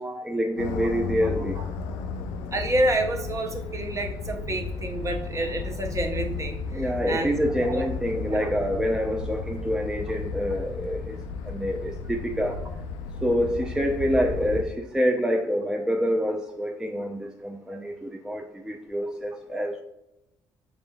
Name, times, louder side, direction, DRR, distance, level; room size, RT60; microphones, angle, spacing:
voice 1, 0.2-1.6 6.7-12.6 13.2-19.8, equal, 5° right, 1 dB, 0.5 m, -27 dB
sound 1, 0.6-14.6, left 4 dB, 90° left, 0.4 m, -34 dB
voice 2, 2.5-7.3 7.6-7.8 8.3-8.5, right 1 dB, 30° right, 3 dB, 0.8 m, -29 dB
4.9 x 3.4 x 2.2 m, 0.88 s
supercardioid pair, 60°, 10 cm